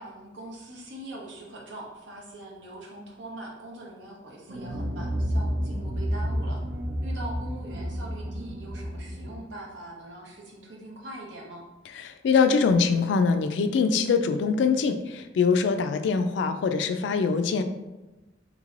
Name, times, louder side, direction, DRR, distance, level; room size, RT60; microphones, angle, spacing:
voice 1, 0.0-6.6 7.0-11.6, right 1 dB, 90° right, -2 dB, 0.8 m, -42 dB
sound 1, 4.5-9.4, equal, 65° right, 0.5 m, -30 dB
voice 2, 11.9-17.6, left 5 dB, 80° left, 8 dB, 0.3 m, -23 dB
3.5 x 3.1 x 2.5 m, 1.1 s
head